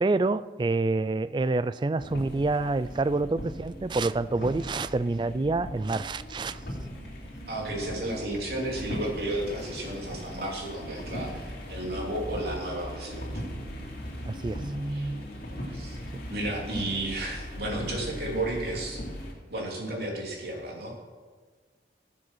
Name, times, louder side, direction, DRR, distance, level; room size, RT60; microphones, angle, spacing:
voice 1, 0.0-6.6 14.3-14.6 16.1-16.2, right 3 dB, 25° right, 14 dB, 0.3 m, -27 dB
sound 1, 2.0-19.3, equal, 60° left, 2.4 m, -38 dB
voice 2, 7.5-13.3 14.9-15.1 15.5-16.0 16.3-19.0 19.5-21.0, right 1 dB, 65° right, -2 dB, 3.2 m, -33 dB
15.5 x 7.5 x 6.3 m, 1.5 s
head